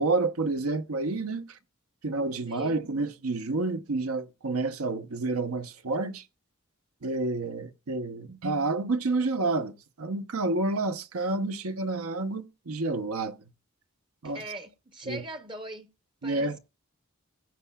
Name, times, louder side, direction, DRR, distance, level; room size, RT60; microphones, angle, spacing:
voice 1, 0.0-1.6 2.0-6.2 7.0-9.7 10.0-13.4 14.2-14.4 15.1-15.2 16.2-16.6, right 3 dB, 90° right, 0.8 m, -29 dB
voice 2, 2.5-2.8 14.2-15.9 16.2-16.6, right 1 dB, 25° right, 0.6 m, -41 dB
15.5 x 8.2 x 2.3 m
head